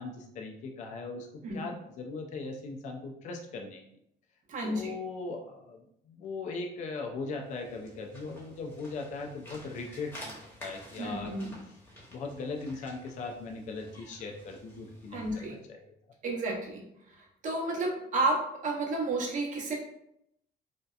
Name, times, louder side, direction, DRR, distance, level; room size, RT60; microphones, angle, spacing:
voice 1, 0.0-1.3 1.5-3.8 4.6-11.3 12.1-15.8, left 3 dB, 45° left, 2 dB, 0.4 m, -39 dB
voice 2, 4.5-4.9 11.0-11.5 15.1-15.6 16.2-16.8 17.1-19.7, right 2 dB, 50° right, 0 dB, 0.7 m, -31 dB
sound 1, 7.3-15.6, equal, 15° left, 0.9 m, -50 dB
2.7 x 2.1 x 2.3 m, 0.76 s
cardioid pair, 110°, 17 cm